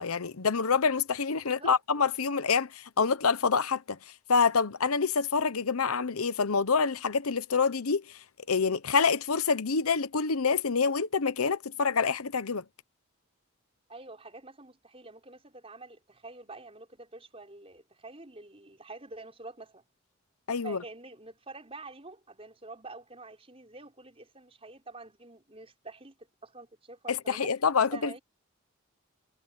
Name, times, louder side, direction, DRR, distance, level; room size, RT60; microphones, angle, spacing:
voice 1, 0.0-4.0 4.3-8.0 8.5-12.6 20.5-20.8 27.1-28.2, left 5 dB, 90° left, 0.9 m, -27 dB
voice 2, 1.4-1.8 13.9-19.8 20.6-26.1 26.4-28.2, right 3 dB, 25° right, 5.4 m, -47 dB
head